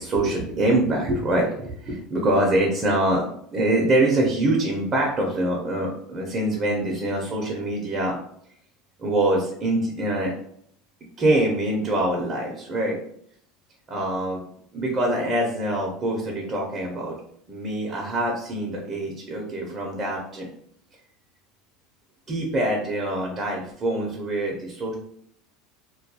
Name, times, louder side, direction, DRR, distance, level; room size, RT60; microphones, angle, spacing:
voice 1, 0.0-8.2 9.0-10.3 11.2-13.0 13.9-14.4 14.7-17.2 17.5-20.5 22.3-24.9, right 1 dB, 30° right, -1 dB, 0.6 m, -24 dB
2.2 x 2.2 x 2.7 m, 0.67 s
supercardioid pair, 120°, 0 cm